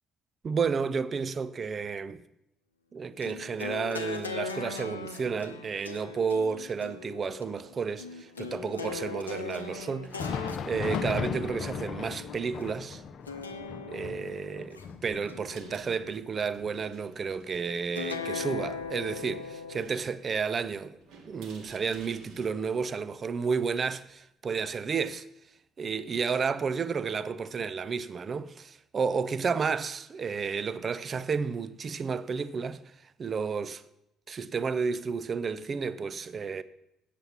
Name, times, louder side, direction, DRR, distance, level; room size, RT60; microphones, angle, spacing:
voice 1, 0.4-2.2 2.9-10.4 10.7-13.0 13.9-21.0 21.3-25.3 25.8-32.8 33.2-33.8 34.3-36.6, right 5 dB, 40° right, 0.6 m, -31 dB
sound 1, 3.2-12.7 13.3-14.8 15.3-16.4 17.9-19.9, left 5 dB, 85° left, 0.7 m, -40 dB
Thunder, 9.9-19.4 19.7-19.9 20.6-20.8 21.8-21.9, left 6 dB, 50° left, 0.7 m, -38 dB
sound 2, 15.3-24.0, right 4 dB, 65° right, 1.8 m, -57 dB
8.4 x 7.9 x 7.2 m
figure-of-eight pair, 50°, 0 cm